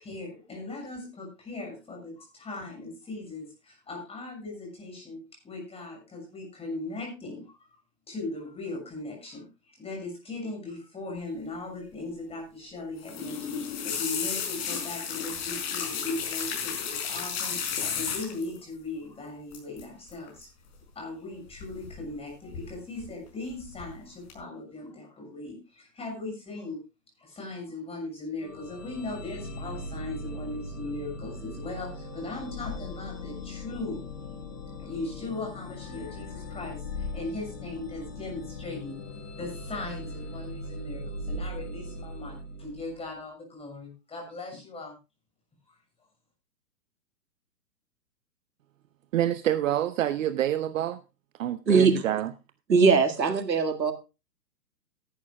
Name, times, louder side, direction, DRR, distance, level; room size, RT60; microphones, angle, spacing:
voice 1, 0.0-7.6 8.1-17.6 17.9-20.5 20.9-26.8 27.2-34.0 34.8-39.0 39.4-45.0, left 2 dB, 10° left, 6.5 m, -38 dB
sound 1, 13.0-18.6 19.5-19.8 20.1-20.4 21.6-22.2 22.5-23.1 23.5-23.9 24.3-24.4, left 7 dB, 40° left, 5.1 m, -33 dB
sound 2, 28.4-43.1, left 1 dB, 70° left, 5.5 m, -39 dB
voice 2, 49.1-51.0 51.4-52.3, right 12 dB, 50° right, 0.9 m, -27 dB
voice 3, 52.7-53.9, right 5 dB, 85° right, 2.0 m, -20 dB
18.0 x 11.5 x 2.3 m
hypercardioid pair, 130°, 49 cm